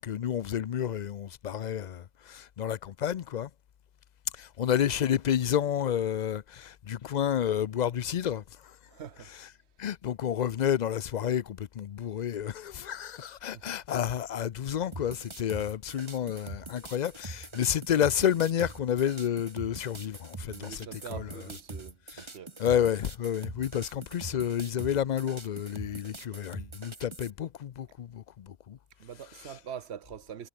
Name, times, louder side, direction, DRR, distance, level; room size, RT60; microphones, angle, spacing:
voice 1, 0.0-3.5 4.4-8.4 9.2-9.5 9.8-21.5 22.1-22.3 22.6-28.8 29.2-29.6, left 9 dB, 50° left, 0.6 m, -30 dB
voice 2, 8.9-9.3 13.5-13.7 20.5-22.6 29.0-30.5, right 8 dB, 80° right, 1.3 m, -44 dB
sound 1, 14.9-27.3, right 2 dB, 25° right, 1.8 m, -43 dB
omnidirectional pair, 1.1 m